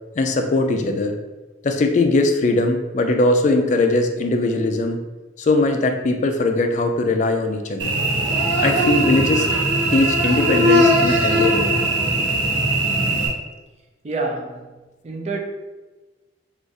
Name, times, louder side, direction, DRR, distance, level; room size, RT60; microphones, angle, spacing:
voice 1, 0.2-1.2 1.6-5.0 5.4-8.0 8.6-9.5 9.9-11.8, left 2 dB, 40° left, 5 dB, 0.3 m, -20 dB
Cricket / Buzz, 7.8-13.3, right 1 dB, 90° right, 0.7 m, -19 dB
voice 2, 14.0-14.8 15.0-15.4, right 3 dB, 35° right, 2 dB, 0.4 m, -27 dB
2.5 x 2.4 x 3.9 m, 1.2 s
head